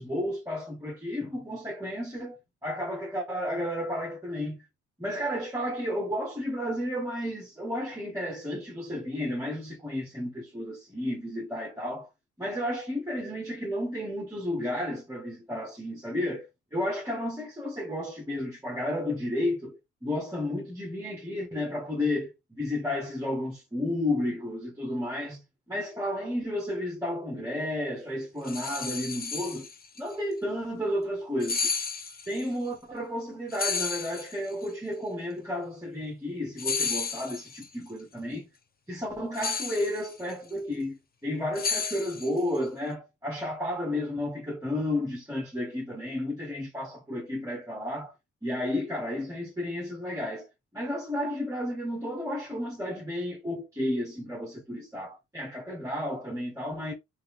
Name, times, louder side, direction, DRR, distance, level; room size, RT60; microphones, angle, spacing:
voice 1, 0.0-4.6 5.0-12.1 12.4-29.7 30.0-31.7 32.3-38.5 38.9-48.1 48.4-50.5 50.7-56.9, left 1 dB, 10° right, 1.6 m, -32 dB
sound 1, 28.4-30.0 31.4-32.4 33.5-34.6 36.6-37.7 39.3-40.3 41.6-42.6, left 5 dB, 30° left, 0.8 m, -32 dB
3.5 x 3.0 x 3.7 m
cardioid pair, 90°, 30 cm